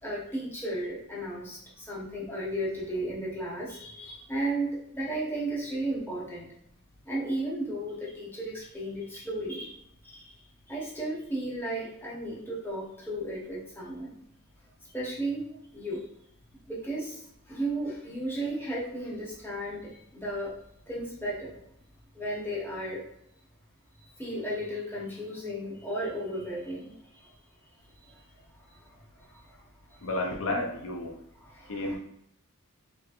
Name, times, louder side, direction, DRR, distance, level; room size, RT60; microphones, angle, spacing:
voice 1, 0.0-6.5 7.0-10.3 10.7-14.2 14.9-15.4 15.7-16.0 16.7-20.6 20.9-21.6 22.1-23.1 24.2-27.3 28.0-28.2 28.7-29.6 29.9-30.1 31.3-32.0, right 1 dB, 10° left, -6 dB, 0.8 m, -34 dB
voice 2, 30.0-31.1 31.7-32.0, left 2 dB, 65° left, 1 dB, 0.5 m, -31 dB
3.2 x 3.1 x 2.4 m, 0.75 s
head